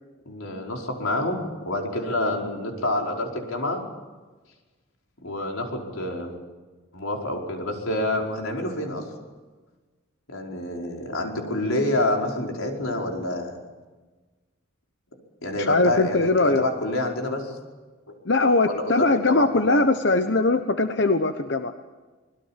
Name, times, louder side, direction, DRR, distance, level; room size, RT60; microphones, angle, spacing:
voice 1, 0.2-3.8 5.2-6.3 6.9-9.1 10.3-13.6 15.4-17.6 18.1-18.2 18.7-19.8, left 1 dB, 85° left, 1 dB, 5.1 m, -27 dB
voice 2, 15.6-16.6 18.2-21.7, left 2 dB, 55° left, 7 dB, 1.1 m, -21 dB
25.5 x 21.0 x 7.5 m, 1.3 s
head